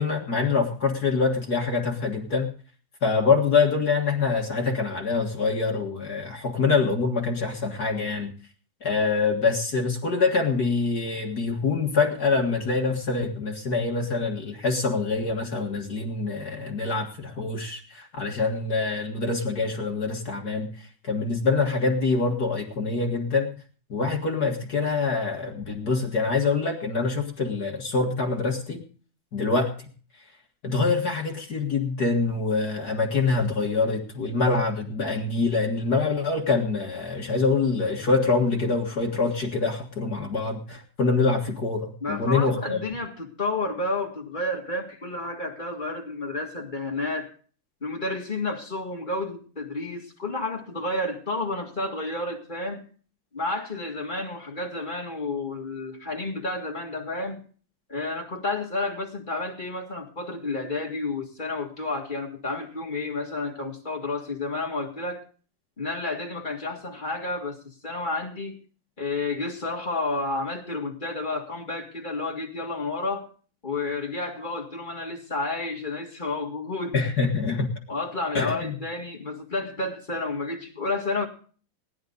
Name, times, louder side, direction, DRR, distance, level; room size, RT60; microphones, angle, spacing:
voice 1, 0.0-2.5 3.0-8.3 8.8-23.5 23.9-28.8 29.3-29.7 30.6-42.8 76.9-77.7 78.3-78.8, left 4 dB, 40° left, 1 dB, 1.5 m, -25 dB
voice 2, 42.0-47.3 47.8-52.8 53.3-57.4 57.9-65.2 65.8-68.6 69.0-73.3 73.6-76.9 77.9-81.3, left 2 dB, 20° left, 0 dB, 1.6 m, -31 dB
18.0 x 10.5 x 3.9 m, 0.41 s
omnidirectional pair, 3.6 m